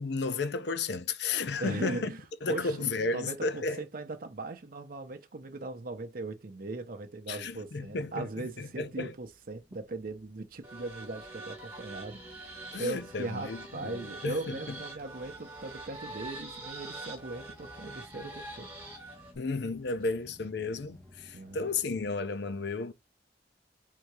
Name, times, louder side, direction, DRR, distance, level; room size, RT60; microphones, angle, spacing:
voice 1, 0.0-2.1 2.4-3.8 7.3-8.2 8.6-9.1 12.7-13.9 14.2-14.6 19.4-22.9, left 3 dB, 65° left, 0.6 m, -33 dB
voice 2, 1.6-18.7 21.3-21.6, right 2 dB, 50° right, 0.6 m, -39 dB
sound 1, 7.6-22.2, equal, 5° left, 1.0 m, -58 dB
sound 2, 10.6-19.4, right 2 dB, 10° right, 1.7 m, -45 dB
3.7 x 2.8 x 4.7 m
head